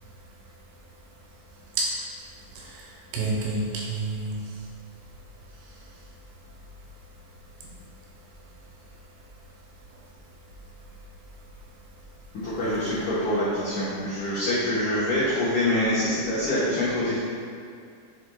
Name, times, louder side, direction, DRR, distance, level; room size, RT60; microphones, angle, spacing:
voice 1, 2.6-4.5, right 2 dB, 75° right, -5 dB, 2.9 m, -29 dB
voice 2, 12.4-17.2, left 1 dB, 70° left, -11 dB, 1.8 m, -25 dB
7.8 x 6.4 x 2.3 m, 2.4 s
omnidirectional pair, 5.4 m